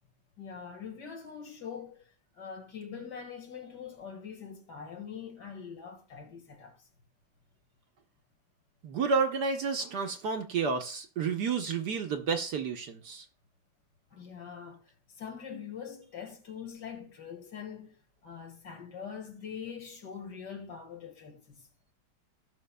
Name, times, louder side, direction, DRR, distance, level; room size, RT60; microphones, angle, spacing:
voice 1, 0.4-2.1 2.4-6.9 14.1-21.6, left 7 dB, 55° left, 2.3 m, -43 dB
voice 2, 8.8-13.2, right 5 dB, 60° right, 1.3 m, -30 dB
17.5 x 6.1 x 2.2 m
omnidirectional pair, 2.2 m